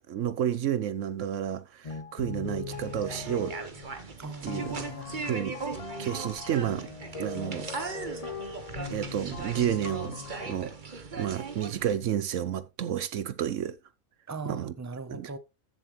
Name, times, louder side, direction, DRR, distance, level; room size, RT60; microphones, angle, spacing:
voice 1, 0.1-3.6 4.4-4.8 5.2-5.5 6.0-6.9 7.2-7.7 8.9-10.2 10.5-13.8 14.5-14.7 15.1-15.3, right 10 dB, 70° right, 1.0 m, -31 dB
sound 1, 1.8-4.0 4.4-10.6, left 5 dB, 40° left, 0.5 m, -40 dB
sound 2, 2.7-11.9, right 4 dB, 35° right, 1.4 m, -39 dB
voice 2, 4.2-5.2 14.3-15.4, right 3 dB, 20° right, 0.5 m, -39 dB
14.5 x 7.3 x 3.1 m
omnidirectional pair, 1.4 m